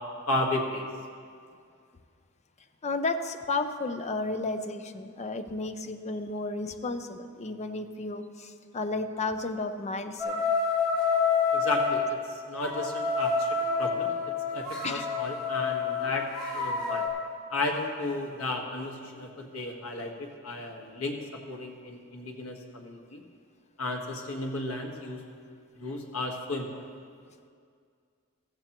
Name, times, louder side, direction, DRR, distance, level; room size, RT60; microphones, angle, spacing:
voice 1, 0.3-0.9 11.5-13.5 13.8-14.1 14.5-16.3 16.5-17.0 17.5-23.2 23.8-25.2 25.8-26.8, left 2 dB, 75° left, 1 dB, 1.6 m, -34 dB
voice 2, 2.8-10.6 14.8-15.1, left 3 dB, 30° left, 8 dB, 0.6 m, -33 dB
sound 1, 10.2-11.9 12.6-17.1, left 5 dB, 45° left, 3.7 m, -28 dB
15.5 x 15.0 x 3.0 m, 2.2 s
head